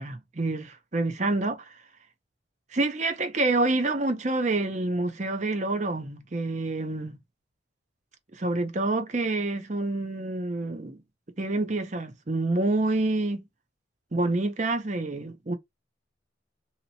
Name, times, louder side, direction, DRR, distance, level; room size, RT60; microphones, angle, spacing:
voice 1, 0.0-1.7 2.7-7.2 8.4-11.0 11.4-13.4 14.1-15.5, right 2 dB, 40° right, 0.7 m, -27 dB
2.9 x 2.9 x 2.8 m
head